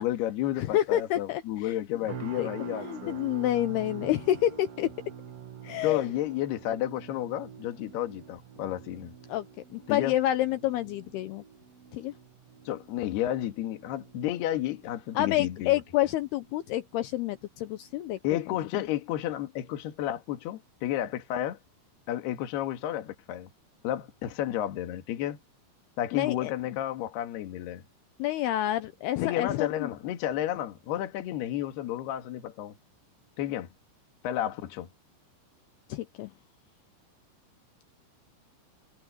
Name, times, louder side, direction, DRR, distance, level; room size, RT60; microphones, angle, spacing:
voice 1, 0.0-3.2 5.8-9.1 9.9-10.1 12.7-15.8 18.2-21.6 22.1-23.5 23.8-25.4 26.0-27.8 29.2-32.8 33.4-33.7 34.2-34.9, left 12 dB, 65° left, 3.6 m, -31 dB
voice 2, 0.6-1.8 2.4-2.5 2.8-4.9 5.6-6.1 9.3-9.5 9.7-11.4 11.9-12.1 15.2-18.2 26.1-26.5 28.2-29.9 35.9-36.3, left 13 dB, 80° left, 2.3 m, -28 dB
sound 1, 2.1-17.3 17.6-18.0 18.5-18.7, right 7 dB, 85° right, 1.4 m, -46 dB
omnidirectional pair, 5.6 m